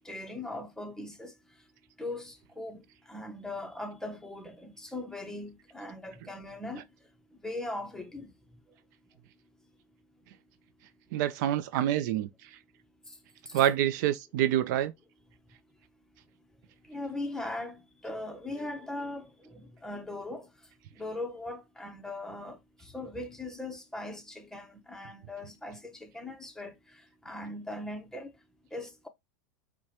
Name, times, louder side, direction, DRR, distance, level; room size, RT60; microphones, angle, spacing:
voice 1, 0.0-1.3 2.0-2.8 3.1-6.9 7.4-8.3 13.5-13.6 16.9-20.5 21.0-26.7 27.2-28.3 28.7-29.1, left 2 dB, 5° left, 0.7 m, -39 dB
voice 2, 11.1-12.5 13.5-14.9, right 12 dB, 65° right, 0.4 m, -27 dB
4.6 x 2.1 x 2.9 m
hypercardioid pair, 110°, 11 cm